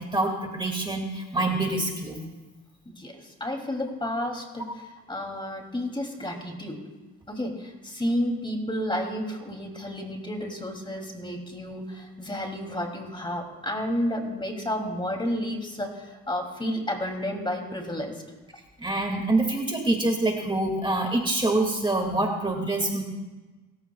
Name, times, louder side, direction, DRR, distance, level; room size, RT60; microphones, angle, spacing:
voice 1, 0.0-2.3 18.8-23.0, right 2 dB, 15° right, 1 dB, 2.3 m, -26 dB
voice 2, 2.9-6.8 7.3-18.2, left 1 dB, 15° left, 2 dB, 2.9 m, -31 dB
29.0 x 15.0 x 2.4 m, 1.2 s
cardioid pair, 90°, 30 cm